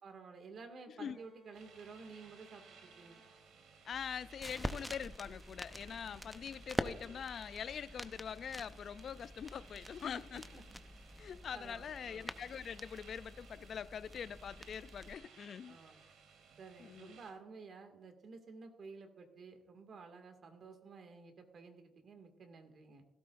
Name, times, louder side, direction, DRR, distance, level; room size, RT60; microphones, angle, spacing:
voice 1, 0.0-3.2 10.5-10.6 11.5-12.3 15.7-16.0 16.6-23.1, right 4 dB, 55° right, 2.0 m, -53 dB
Bowed string instrument, 1.0-4.1, right 1 dB, 20° right, 2.4 m, -67 dB
sound 1, 1.5-17.3, right 6 dB, 85° right, 2.4 m, -60 dB
voice 2, 3.9-10.4 11.2-15.8 16.8-17.2, left 7 dB, 55° left, 0.3 m, -44 dB
sound 2, 3.9-15.2, equal, ahead, 0.7 m, -46 dB
16.5 x 13.0 x 2.5 m
cardioid pair, 90°, 0 cm